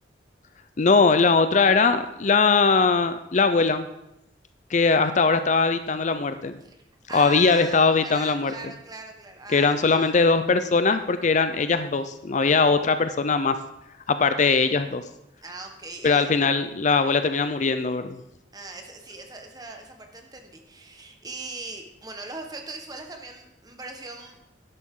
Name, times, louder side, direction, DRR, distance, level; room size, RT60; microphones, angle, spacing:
voice 1, 0.8-3.8 4.7-6.6 7.1-8.5 9.5-13.6 14.1-15.0 16.0-18.2, left 4 dB, 40° left, 10 dB, 0.5 m, -21 dB
voice 2, 7.1-10.2 15.4-16.3 18.5-24.4, right 3 dB, 20° right, 4 dB, 1.3 m, -40 dB
11.0 x 11.0 x 3.8 m, 0.85 s
head